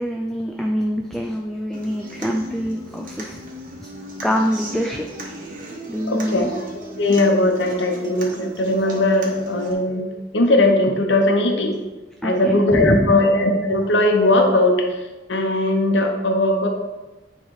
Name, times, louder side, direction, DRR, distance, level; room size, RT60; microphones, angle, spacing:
voice 1, 0.0-3.4 3.8-3.9 4.2-5.0 5.9-6.5 12.2-13.1, equal, ahead, 1 dB, 0.4 m, -24 dB
Human voice / Acoustic guitar, 1.7-9.7, right 1 dB, 50° right, 1.2 m, -36 dB
voice 2, 6.1-6.5 7.0-10.1 10.3-11.8 12.2-14.8 15.3-16.7, left 1 dB, 85° left, 3 dB, 1.0 m, -18 dB
9.0 x 3.3 x 4.7 m, 1.1 s
head